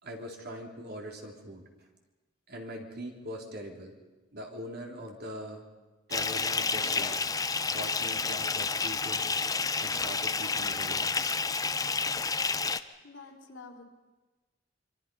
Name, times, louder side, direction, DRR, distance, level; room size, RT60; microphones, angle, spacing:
voice 1, 0.0-1.6 2.5-3.9 4.3-5.6 6.1-7.2 7.7-9.2 9.8-11.4, equal, 55° right, 1 dB, 3.5 m, -42 dB
Bathtub (filling or washing) / Fill (with liquid), 6.1-12.8, left 4 dB, 20° left, 0.7 m, -30 dB
voice 2, 13.0-13.8, left 3 dB, 75° left, 1 dB, 3.7 m, -48 dB
25.0 x 25.0 x 5.5 m, 1.2 s
head